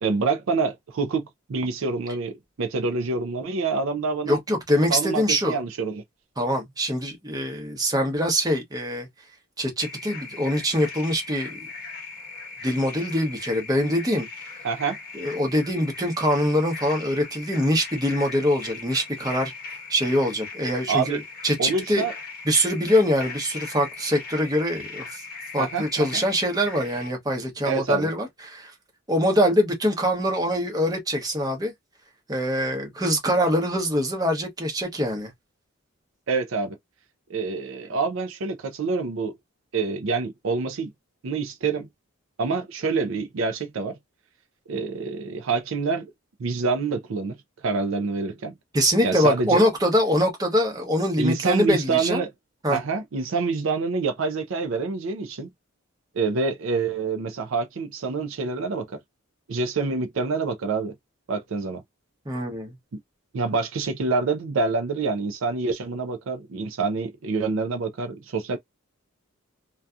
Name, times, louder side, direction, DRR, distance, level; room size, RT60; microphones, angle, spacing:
voice 1, 0.0-4.4 4.9-6.0 14.6-15.0 20.9-21.2 21.6-22.1 25.6-26.2 27.6-28.1 36.3-36.8 37.3-39.3 39.7-40.9 41.2-41.9 42.4-44.0 44.7-46.1 46.4-47.3 47.6-48.5 49.0-49.6 51.2-52.3 52.7-55.5 56.1-59.0 59.5-60.9 61.3-61.8 63.3-68.6, right 4 dB, 65° right, 0.4 m, -26 dB
voice 2, 4.3-5.6 6.4-9.1 9.6-11.6 12.6-14.3 15.1-19.5 19.9-22.0 22.5-25.2 25.5-28.7 29.1-31.7 32.3-35.3 48.7-52.2 52.6-52.8 62.3-62.7, equal, 15° right, 0.8 m, -24 dB
sound 1, 9.8-27.1, left 4 dB, 45° left, 0.9 m, -39 dB
2.6 x 2.3 x 2.3 m
head